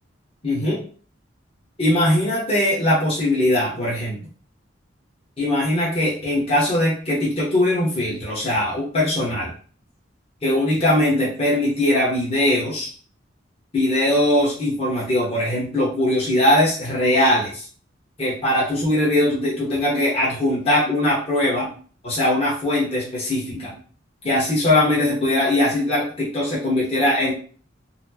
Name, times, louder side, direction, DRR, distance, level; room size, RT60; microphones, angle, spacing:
voice 1, 0.4-0.8 1.8-4.2 5.4-9.5 10.4-12.9 13.7-17.7 18.2-21.7 22.0-23.7 24.2-27.3, left 1 dB, 30° left, -7 dB, 1.0 m, -20 dB
4.1 x 2.0 x 2.8 m, 0.43 s
head